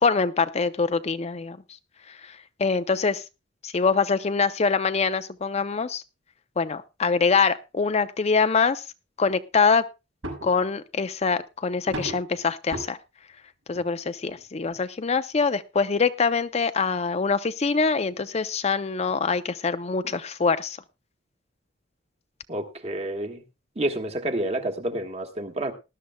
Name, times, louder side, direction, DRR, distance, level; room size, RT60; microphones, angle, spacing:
voice 1, 0.0-1.6 2.1-3.2 3.6-6.0 6.6-8.8 9.2-9.8 10.4-13.0 13.7-20.8, left 5 dB, 35° left, 11 dB, 0.5 m, -24 dB
sound 1, 10.2-10.6 11.9-12.3 12.7-12.9 13.7-13.8 14.3-14.4 14.7-14.8 15.4-15.5, right 1 dB, 90° right, 6.1 m, -34 dB
voice 2, 22.5-23.4 23.7-25.7, right 1 dB, 35° right, 5 dB, 1.5 m, -29 dB
19.5 x 12.0 x 2.2 m, 0.26 s
head